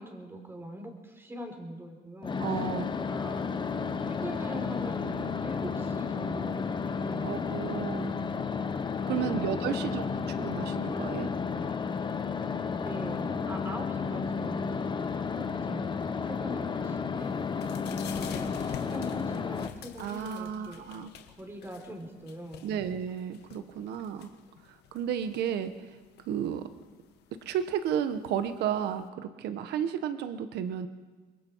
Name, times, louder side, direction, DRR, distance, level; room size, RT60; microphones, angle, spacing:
voice 1, 0.0-2.6 3.0-7.3 12.8-14.8 15.1-15.9 16.2-17.3 17.9-20.9 21.4-22.7, equal, 15° right, 4 dB, 4.0 m, -42 dB
sound 1, 2.2-19.7, left 5 dB, 25° left, 1.0 m, -32 dB
voice 2, 2.4-2.9 7.2-8.2 9.1-10.0 10.4-11.3 20.0-21.1 22.6-24.3 24.7-25.9 26.3-26.6 27.4-30.9, right 9 dB, 75° right, 10 dB, 1.3 m, -32 dB
sound 2, 2.6-9.2, right 4 dB, 30° right, 2.1 m, -51 dB
sound 3, 17.2-29.1, left 9 dB, 75° left, 1.6 m, -49 dB
25.5 x 22.0 x 4.7 m, 1.3 s
cardioid pair, 110°, 17 cm